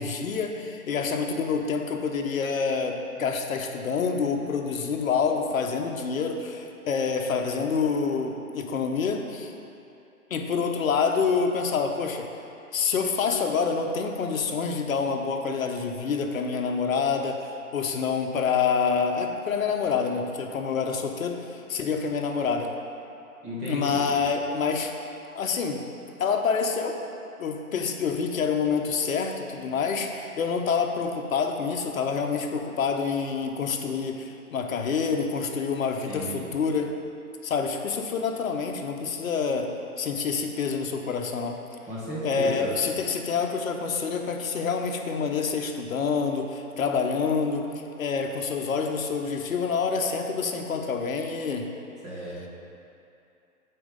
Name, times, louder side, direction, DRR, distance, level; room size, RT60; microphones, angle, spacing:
voice 1, 0.0-9.5 10.3-12.3 12.7-22.7 23.7-24.9 25.3-25.8 26.2-27.0 27.4-36.9 37.4-41.6 42.2-47.7 48.0-51.7, left 5 dB, 65° left, 4 dB, 0.9 m, -27 dB
voice 2, 23.4-24.1 36.1-36.6 41.8-42.8 52.0-52.5, equal, 15° right, -8 dB, 1.6 m, -34 dB
7.8 x 4.6 x 5.2 m, 2.7 s
hypercardioid pair, 150°, 45 cm